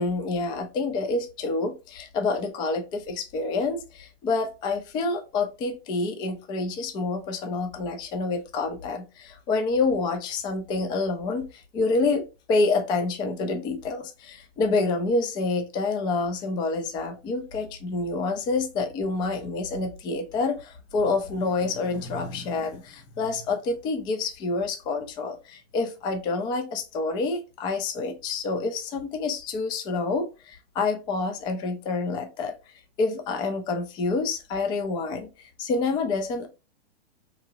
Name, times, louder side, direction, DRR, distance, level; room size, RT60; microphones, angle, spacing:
voice 1, 0.0-12.2 12.5-32.5 33.0-36.5, left 3 dB, 15° left, 5 dB, 0.3 m, -28 dB
3.6 x 2.9 x 2.5 m, 0.29 s
hypercardioid pair, 130°, 31 cm